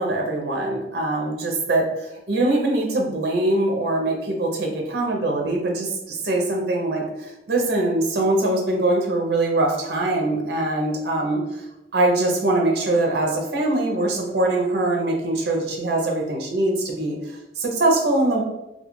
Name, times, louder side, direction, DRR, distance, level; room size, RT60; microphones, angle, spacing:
voice 1, 0.0-11.6 11.9-18.4, right 2 dB, 60° right, 0 dB, 0.5 m, -23 dB
2.3 x 2.3 x 3.0 m, 0.93 s
head